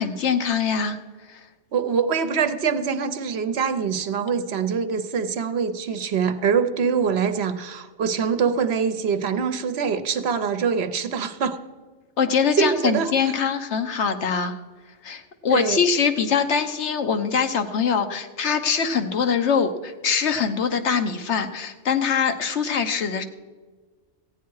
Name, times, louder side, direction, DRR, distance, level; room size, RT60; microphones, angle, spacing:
voice 1, 0.0-1.5 12.2-14.6 15.0-23.2, left 6 dB, 75° left, 7 dB, 1.2 m, -23 dB
voice 2, 1.7-11.6 12.6-13.3 15.5-15.8, right 6 dB, 65° right, 10 dB, 1.0 m, -24 dB
15.5 x 9.4 x 4.7 m, 1.4 s
omnidirectional pair, 1.2 m